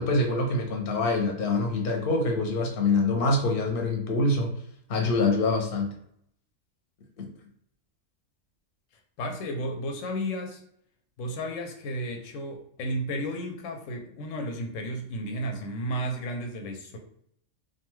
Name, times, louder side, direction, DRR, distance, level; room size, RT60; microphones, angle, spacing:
voice 1, 0.0-4.5 4.9-5.9 7.2-7.3, left 2 dB, 55° left, 2 dB, 0.7 m, -25 dB
voice 2, 9.2-10.6 11.2-17.0, equal, 90° left, 3 dB, 1.0 m, -33 dB
2.5 x 2.3 x 3.0 m, 0.68 s
omnidirectional pair, 1.3 m